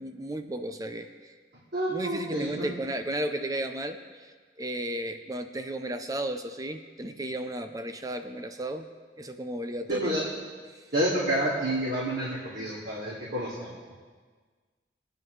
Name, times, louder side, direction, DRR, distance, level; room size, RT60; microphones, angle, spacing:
voice 1, 0.0-1.3 1.9-4.3 4.6-8.9 9.2-10.2, right 1 dB, 20° right, 7 dB, 0.5 m, -34 dB
voice 2, 1.7-2.7 9.9-10.2 10.9-13.7, right 1 dB, 60° right, -8 dB, 2.5 m, -29 dB
22.0 x 9.1 x 3.3 m, 1.5 s
head